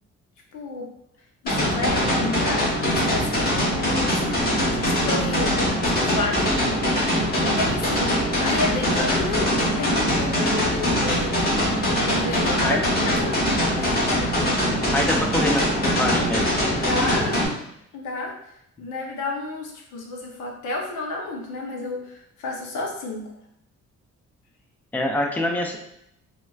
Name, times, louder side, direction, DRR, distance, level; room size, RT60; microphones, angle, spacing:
voice 1, 0.5-0.9 1.4-4.5 4.9-6.5 7.0-11.6 12.1-14.1 16.7-17.4 17.9-18.3 18.8-23.3, left 3 dB, 85° left, 0 dB, 0.8 m, -31 dB
sound 1, 1.5-17.5, equal, 30° left, 1.2 m, -22 dB
voice 2, 14.9-16.6 24.9-25.8, left 1 dB, 5° left, 2 dB, 0.4 m, -25 dB
4.4 x 2.2 x 2.3 m, 0.76 s
cardioid pair, 90°, 30 cm